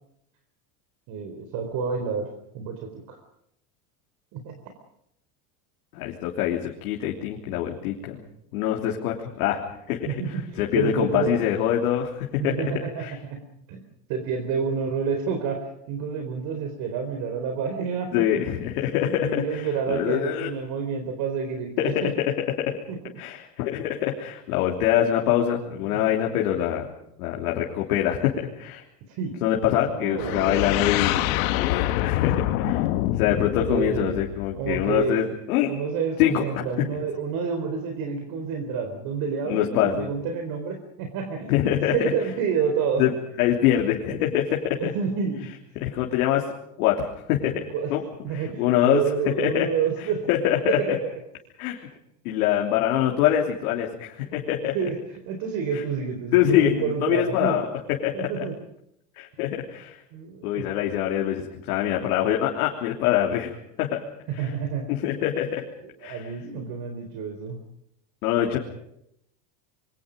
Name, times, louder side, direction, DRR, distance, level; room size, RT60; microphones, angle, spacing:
voice 1, 1.1-2.3 2.5-3.2 4.3-4.5 10.1-11.4 12.4-13.4 13.7-13.8 14.1-18.2 19.0-22.1 22.9-23.0 25.7-26.0 29.1-29.3 29.9-30.7 31.4-31.6 32.6-32.8 33.6-34.1 34.6-35.3 35.6-41.5 41.9-43.0 44.1-44.2 44.8-45.5 47.7-47.9 48.2-50.2 50.7-51.1 54.3-54.4 54.7-57.6 58.1-58.6 60.1-60.6 64.4-64.9 66.0-67.6, right 6 dB, 50° right, 5 dB, 4.0 m, -29 dB
voice 2, 5.9-8.2 8.5-9.6 9.9-10.2 10.6-12.6 13.0-13.2 18.1-20.5 21.8-22.3 22.6-22.8 23.2-26.9 27.2-28.8 29.4-32.8 33.2-35.7 36.2-36.9 39.4-40.1 41.5-41.9 43.0-43.1 43.4-44.9 45.8-46.4 46.8-47.6 47.9-48.0 48.3-49.0 49.4-49.7 50.3-50.8 51.6-51.9 52.2-54.7 56.3-57.6 58.0-58.4 59.2-60.0 60.4-64.0 64.3-64.5 64.9-65.6 66.0-66.3 68.2-68.6, left 11 dB, 90° left, -1 dB, 3.3 m, -24 dB
sound 1, 30.2-35.0, left 15 dB, 70° left, 1.6 m, -26 dB
27.5 x 24.0 x 5.2 m, 0.76 s
cardioid pair, 160°, 43 cm